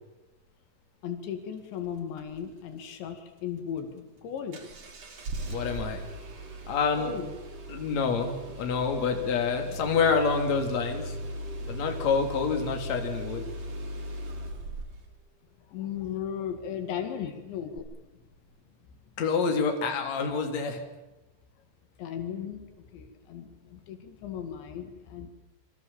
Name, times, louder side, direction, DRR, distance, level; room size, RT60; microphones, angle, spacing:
voice 1, 1.0-4.6 7.0-7.3 15.7-17.9 22.0-22.7 22.9-25.3, left 8 dB, 80° left, 6 dB, 4.6 m, -36 dB
Engine starting, 4.5-15.1 17.8-17.9, right 1 dB, 40° right, 3.8 m, -38 dB
voice 2, 5.5-6.0 6.7-7.2 7.7-11.2 11.7-13.5 19.2-20.8, left 5 dB, 40° left, 4 dB, 3.9 m, -27 dB
27.5 x 24.0 x 7.3 m, 1.0 s
omnidirectional pair, 5.1 m